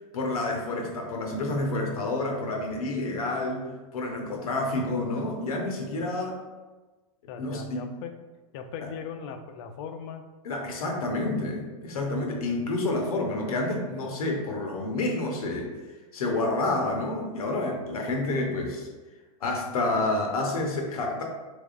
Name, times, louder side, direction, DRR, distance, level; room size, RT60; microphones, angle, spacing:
voice 1, 0.1-3.6 3.9-6.4 7.4-7.8 10.4-15.7 16.1-18.9 19.4-21.2, left 2 dB, 80° left, 1 dB, 0.8 m, -29 dB
voice 2, 7.3-8.1 8.5-10.2, left 7 dB, 55° left, 7 dB, 0.4 m, -38 dB
3.4 x 3.1 x 2.4 m, 1.2 s
hypercardioid pair, 115°, 18 cm